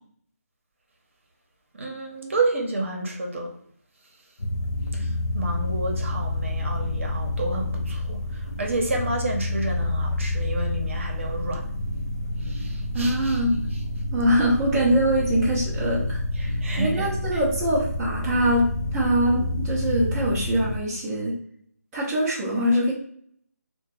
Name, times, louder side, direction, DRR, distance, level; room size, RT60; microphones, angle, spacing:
voice 1, 1.7-3.5 4.9-11.6 12.4-13.4 16.4-17.1, right 2 dB, 50° right, 1 dB, 0.8 m, -30 dB
sound 1, 4.4-20.8, left 1 dB, 70° left, 0.6 m, -28 dB
voice 2, 12.9-13.7 14.1-21.4 21.9-22.9, equal, 10° right, -8 dB, 0.5 m, -23 dB
2.9 x 2.2 x 4.2 m, 0.63 s
figure-of-eight pair, 160°, 9 cm